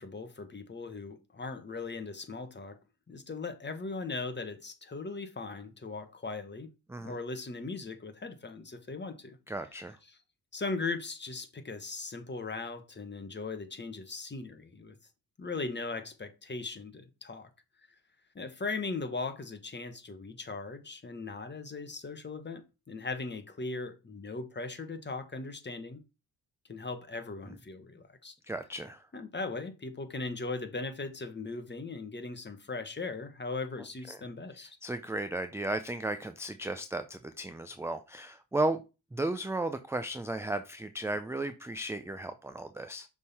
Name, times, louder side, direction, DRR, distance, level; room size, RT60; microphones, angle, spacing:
voice 1, 0.0-2.8 3.1-6.7 7.0-9.4 9.8-10.2 10.5-15.0 15.4-17.5 18.3-26.0 26.7-28.3 29.1-34.8, left 3 dB, 25° left, 1.3 m, -39 dB
voice 2, 9.5-10.0 28.5-29.0 34.6-38.8 39.1-43.1, right 2 dB, 5° right, 0.4 m, -34 dB
6.4 x 3.7 x 4.2 m
cardioid pair, 80°, 42 cm